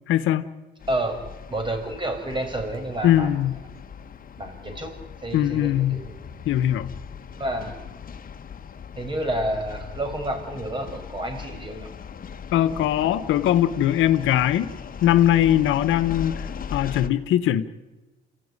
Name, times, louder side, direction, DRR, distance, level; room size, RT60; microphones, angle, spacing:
voice 1, 0.1-0.4 3.0-3.6 5.3-6.0 6.4-6.9 12.5-17.6, left 12 dB, 85° left, 1.0 m, -21 dB
sound 1, 0.8-17.1, left 7 dB, 45° left, 1.3 m, -39 dB
voice 2, 0.9-1.2 1.5-3.3 4.4-4.9 5.2-6.1 7.3-7.9 9.0-11.9, right 1 dB, 25° right, 5.9 m, -29 dB
27.5 x 15.5 x 9.8 m
cardioid pair, 90°, 20 cm